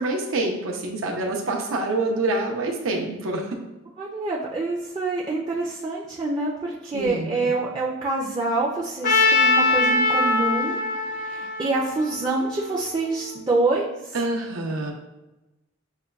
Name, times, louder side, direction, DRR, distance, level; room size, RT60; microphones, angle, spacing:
voice 1, 0.0-3.6 6.9-7.5 14.1-14.9, right 2 dB, 85° right, 1 dB, 0.7 m, -26 dB
voice 2, 4.0-10.8 11.2-13.9, right 3 dB, 20° right, -3 dB, 0.4 m, -26 dB
Trumpet, 9.0-13.1, left 3 dB, 40° left, 0.4 m, -22 dB
6.5 x 2.2 x 2.3 m, 1.0 s
head